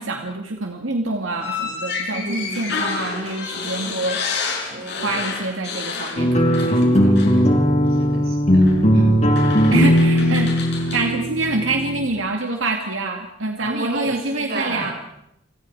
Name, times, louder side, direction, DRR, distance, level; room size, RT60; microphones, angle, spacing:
voice 1, 0.0-4.2 5.0-7.5 7.9-8.2 8.9-9.3 9.7-10.6 10.9-14.9, right 2 dB, 90° right, 3 dB, 2.4 m, -26 dB
sound 1, 1.4-6.9 7.1-7.4 8.6-8.8 9.3-11.1, left 5 dB, 60° left, 7.4 m, -29 dB
voice 2, 2.1-2.8 3.8-4.0 4.7-5.4 8.0-8.7 10.1-10.3 13.6-14.9, right 2 dB, 55° right, 1 dB, 7.0 m, -32 dB
sound 2, 6.2-12.1, equal, 35° left, 4.2 m, -17 dB
30.0 x 25.5 x 4.9 m, 0.80 s
head